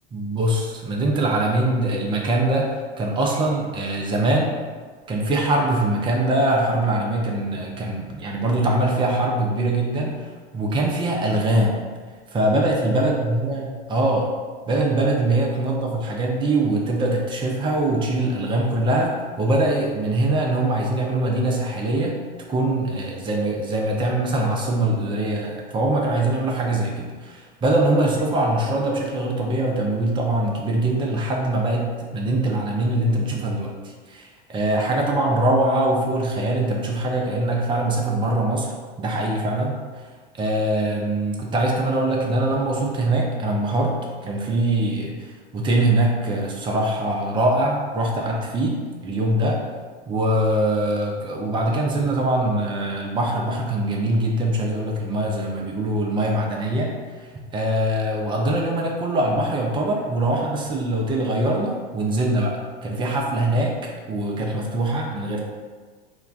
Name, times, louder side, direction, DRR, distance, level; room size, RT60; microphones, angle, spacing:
voice 1, 0.1-2.7 3.0-4.6 5.1-10.2 10.5-11.8 12.3-14.3 14.7-22.2 22.5-33.7 34.1-38.7 39.0-40.0 40.3-44.0 44.2-49.6 50.1-63.7 64.1-65.4, right 1 dB, 15° right, -1 dB, 0.5 m, -23 dB
3.9 x 2.2 x 2.4 m, 1.4 s
hypercardioid pair, 85°, 30 cm